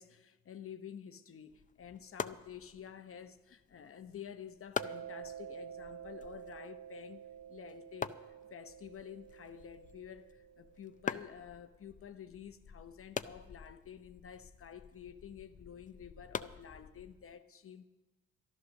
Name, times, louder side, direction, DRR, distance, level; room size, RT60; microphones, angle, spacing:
voice 1, 0.0-17.9, left 8 dB, 45° left, 0.8 m, -50 dB
sound 1, 1.5-17.3, left 6 dB, 25° left, 0.5 m, -46 dB
Mallet percussion, 4.8-11.2, right 10 dB, 60° right, 0.6 m, -50 dB
13.0 x 11.0 x 6.3 m
cardioid pair, 90°, 30 cm